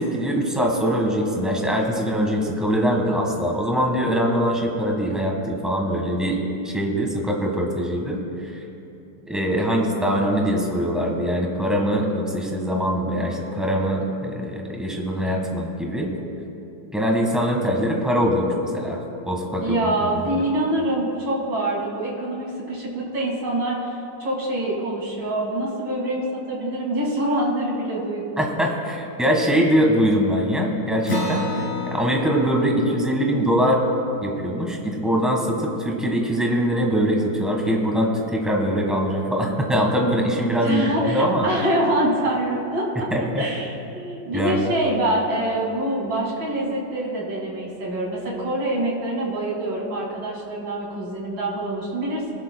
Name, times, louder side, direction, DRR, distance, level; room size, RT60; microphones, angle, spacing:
voice 1, 0.0-8.2 9.3-16.1 16.9-19.0 19.3-20.3 28.4-33.8 34.2-41.5 43.1-43.5 44.3-44.7, equal, ahead, 0 dB, 1.3 m, -22 dB
voice 2, 19.6-28.4 40.6-43.1 43.4-52.3, right 1 dB, 80° right, -4 dB, 3.1 m, -25 dB
Acoustic guitar, 31.1-36.0, left 3 dB, 45° left, 2.6 m, -32 dB
21.5 x 12.0 x 2.3 m, 2.8 s
omnidirectional pair, 1.9 m